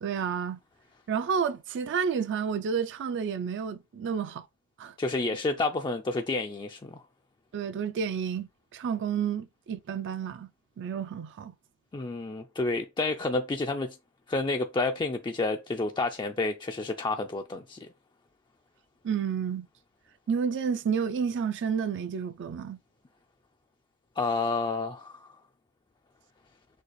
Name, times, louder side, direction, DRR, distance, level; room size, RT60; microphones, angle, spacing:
voice 1, 0.0-0.6 1.1-4.5 4.8-4.9 7.5-10.5 10.8-11.5 19.0-19.7 20.3-22.8, right 6 dB, 55° right, 0.4 m, -30 dB
voice 2, 5.0-7.0 11.9-14.0 14.3-17.9 24.2-25.3, left 3 dB, 20° left, 0.3 m, -30 dB
6.5 x 2.4 x 3.1 m
head